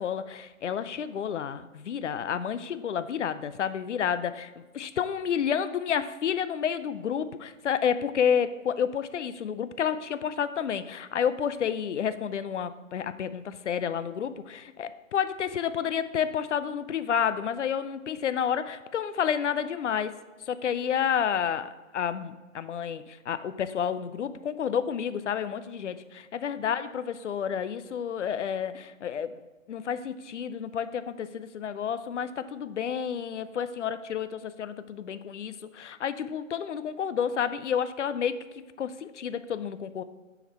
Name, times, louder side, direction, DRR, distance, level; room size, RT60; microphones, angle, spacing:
voice 1, 0.0-20.1 20.5-29.4 29.7-38.4 38.8-40.0, left 8 dB, 60° left, 13 dB, 0.5 m, -30 dB
6.8 x 4.7 x 4.3 m, 1.2 s
figure-of-eight pair, 140°, 40 cm